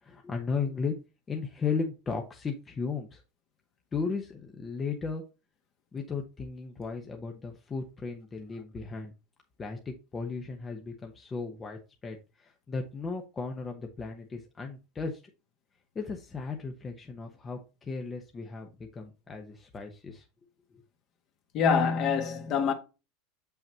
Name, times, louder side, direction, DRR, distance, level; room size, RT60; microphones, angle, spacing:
voice 1, 0.0-0.9 1.3-3.2 3.9-5.2 5.9-9.1 9.6-15.2 15.9-20.3, left 5 dB, 20° left, 0.9 m, -35 dB
voice 2, 21.5-22.7, left 6 dB, 45° left, 1.5 m, -25 dB
7.4 x 5.6 x 2.8 m
supercardioid pair, 140°, 0 cm